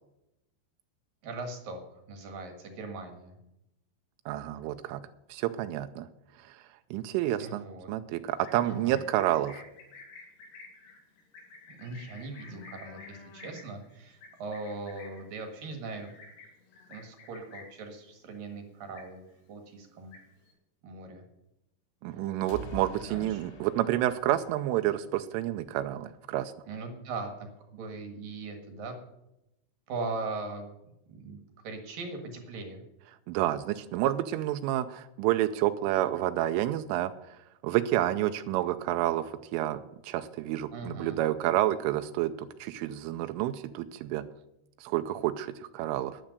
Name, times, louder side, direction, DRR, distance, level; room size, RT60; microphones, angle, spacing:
voice 1, 1.2-3.3 7.4-7.9 8.6-9.0 11.7-16.1 16.9-19.2 19.5-20.1 20.8-21.2 22.0-22.4 23.0-23.4 26.7-29.0 29.9-30.7 31.1-31.4 31.6-32.8 40.7-41.2, right 3 dB, 60° right, 4 dB, 2.8 m, -40 dB
voice 2, 4.3-5.0 5.3-6.1 6.4-6.6 6.9-9.6 22.0-26.5 33.3-37.1 37.6-44.2 44.8-46.2, right 13 dB, 85° right, 9 dB, 3.1 m, -29 dB
Livestock farm animals working animals, 8.3-17.9 18.2-18.6 18.8-19.5 19.8-20.5, left 4 dB, 65° left, 4.1 m, -51 dB
sound 1, 22.5-25.4, equal, 80° left, 4.6 m, -46 dB
12.0 x 10.0 x 6.6 m, 0.88 s
omnidirectional pair, 5.5 m